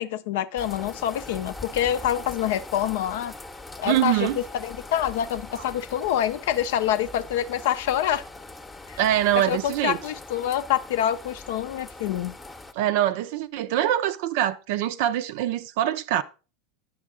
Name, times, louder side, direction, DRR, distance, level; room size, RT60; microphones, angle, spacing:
voice 1, 0.0-3.3 3.8-8.2 8.9-9.0 9.4-12.4, left 11 dB, 65° left, 0.5 m, -26 dB
sound 1, 0.6-12.7, left 2 dB, 15° left, 0.8 m, -41 dB
voice 2, 3.9-4.4 9.0-10.0 12.8-16.2, right 12 dB, 60° right, 0.4 m, -24 dB
9.1 x 6.3 x 3.6 m
figure-of-eight pair, 80°, 0 cm